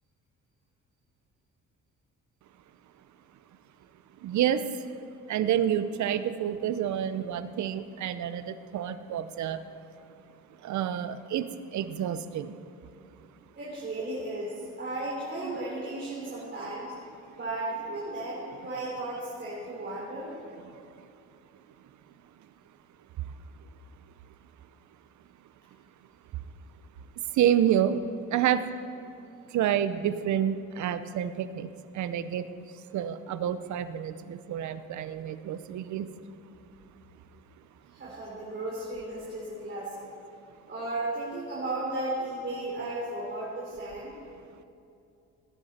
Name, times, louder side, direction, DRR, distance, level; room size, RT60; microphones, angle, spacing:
voice 1, 4.2-4.9 5.3-9.6 10.6-12.6 15.4-15.6 20.6-21.1 23.2-23.3 27.3-28.1 28.3-28.7 29.5-32.5 32.9-36.1, right 10 dB, 70° right, 12 dB, 0.7 m, -29 dB
voice 2, 13.6-14.5 14.8-16.9 17.4-20.3 37.9-39.9 40.7-44.1, right 2 dB, 40° right, -7 dB, 3.5 m, -35 dB
18.0 x 9.8 x 4.3 m, 2.6 s
cardioid pair, 90°, 30 cm